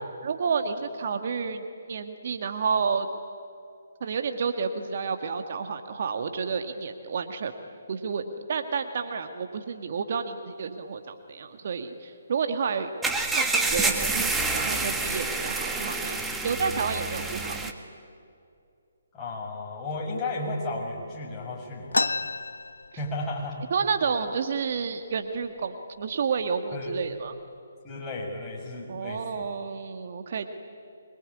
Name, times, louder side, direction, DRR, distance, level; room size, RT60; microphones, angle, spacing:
voice 1, 0.2-3.1 4.0-7.5 7.9-12.9 13.3-16.2 16.4-17.7 23.7-27.3 28.9-30.5, right 5 dB, 50° right, 7 dB, 1.8 m, -30 dB
sound 1, 13.0-17.7, right 3 dB, 5° right, 1.7 m, -28 dB
voice 2, 19.1-22.3 23.0-23.7 26.7-26.9 27.8-29.5, left 2 dB, 15° left, -2 dB, 6.6 m, -34 dB
sound 2, 21.9-23.5 23.9-24.0 24.2-24.8 25.4-25.6 26.3-26.5 26.9-27.4, left 3 dB, 80° left, 0.6 m, -30 dB
26.0 x 23.0 x 9.9 m, 2.5 s
figure-of-eight pair, 140°, 0 cm